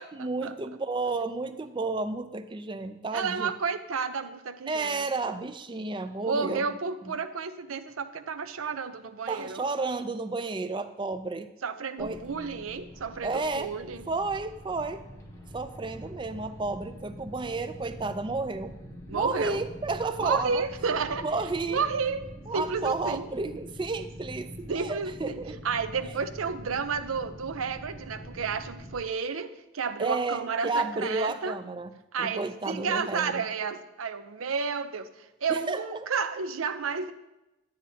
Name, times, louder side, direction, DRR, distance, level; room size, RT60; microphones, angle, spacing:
voice 1, 0.0-3.5 4.7-6.7 7.0-7.1 9.3-11.5 12.0-12.2 13.2-13.7 14.1-15.0 15.5-18.7 19.1-20.6 21.2-21.8 22.5-25.6 30.0-31.9 32.2-33.4 35.5-35.8, right 3 dB, 25° right, 11 dB, 0.4 m, -32 dB
voice 2, 3.1-5.1 6.2-9.6 11.6-14.0 19.1-19.6 20.2-21.2 21.7-22.2 22.5-23.3 24.7-25.4 25.6-31.6 32.1-37.1, right 5 dB, 85° right, 10 dB, 0.6 m, -31 dB
sound 1, 12.0-28.9, equal, 15° left, 0.8 m, -44 dB
11.0 x 9.3 x 2.8 m, 0.98 s
head